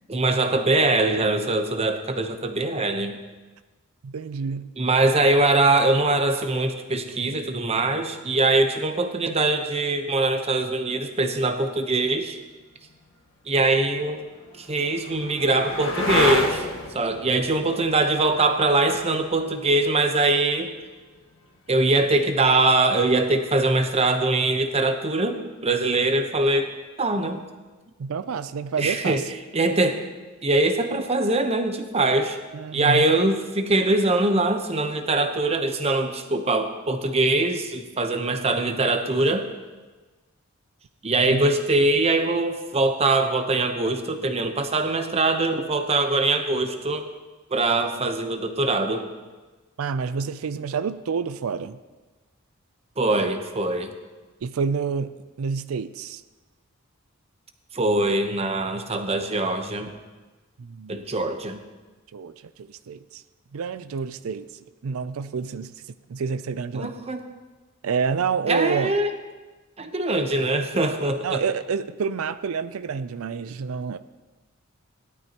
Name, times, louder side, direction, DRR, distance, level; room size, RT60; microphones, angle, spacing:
voice 1, 0.1-3.2 4.8-12.4 13.5-14.2 14.6-16.7 16.9-20.7 21.7-26.7 27.0-27.4 28.8-29.2 29.5-30.0 30.4-32.4 32.7-39.5 41.0-47.1 47.5-49.1 53.0-53.9 57.7-59.9 60.9-61.6 66.7-67.2 68.5-69.1 69.8-71.4, right 2 dB, 30° right, 6 dB, 0.9 m, -22 dB
voice 2, 4.0-4.7 28.0-29.2 32.5-33.1 41.3-41.4 49.8-51.8 54.4-56.2 60.6-61.0 62.1-63.2 63.5-67.0 67.8-68.9 71.2-74.0, right 5 dB, 90° right, 13 dB, 0.4 m, -28 dB
sound 1, 12.9-13.0 13.8-21.4 23.8-24.3, left 1 dB, 75° left, 1.4 m, -30 dB
17.0 x 12.0 x 2.9 m, 1.2 s
head